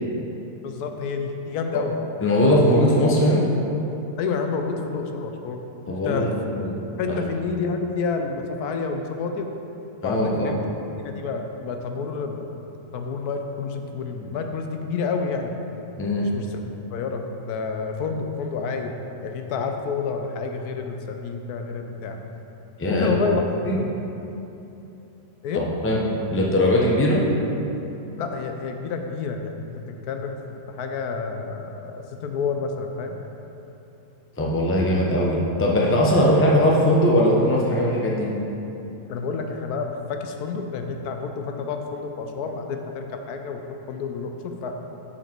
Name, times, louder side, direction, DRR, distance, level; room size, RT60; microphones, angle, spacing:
voice 1, 0.6-1.9 4.2-5.6 5.9-6.3 7.0-9.5 10.0-10.6 11.0-12.5 12.9-15.6 16.2-16.6 16.9-19.0 19.2-22.2 22.9-23.4 23.8-23.9 25.4-25.6 28.2-30.4 30.7-33.1 39.1-43.6 43.9-44.8, left 5 dB, 80° left, 5 dB, 1.1 m, -29 dB
voice 2, 2.2-3.4 5.9-6.7 7.1-7.2 10.0-10.7 16.0-16.3 22.8-23.1 23.6-23.8 25.5-26.0 26.3-27.2 34.4-38.3, left 1 dB, 10° left, -3 dB, 0.6 m, -20 dB
6.9 x 5.9 x 4.4 m, 2.9 s
omnidirectional pair, 1.6 m